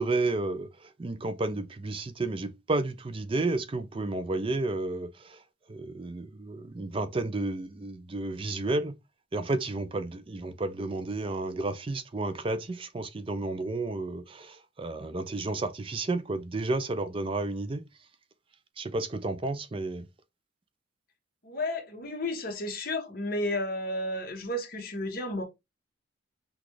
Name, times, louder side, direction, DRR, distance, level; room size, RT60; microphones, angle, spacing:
voice 1, 0.0-5.4 5.7-8.9 9.3-17.8 18.8-20.1, right 2 dB, 25° right, 0.4 m, -31 dB
voice 2, 21.4-25.4, left 1 dB, 50° left, 1.3 m, -32 dB
6.0 x 2.3 x 3.1 m
head